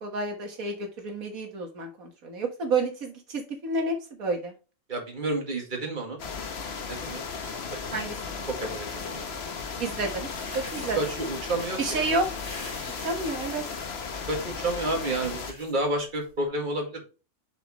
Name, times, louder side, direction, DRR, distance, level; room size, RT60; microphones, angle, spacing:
voice 1, 0.0-4.5 7.9-8.5 9.8-10.3 10.5-11.0 11.8-12.3 13.0-13.6, right 3 dB, 75° right, 3 dB, 1.8 m, -30 dB
voice 2, 4.9-6.2 6.9-7.2 7.9-8.0 8.5-9.3 10.8-12.0 14.3-17.0, right 2 dB, 35° right, 1 dB, 2.2 m, -30 dB
sound 1, 6.2-15.5, left 5 dB, 50° left, 1.2 m, -36 dB
sound 2, 7.4-16.5, left 2 dB, 90° left, 2.9 m, -46 dB
6.6 x 6.4 x 3.0 m, 0.32 s
omnidirectional pair, 1.5 m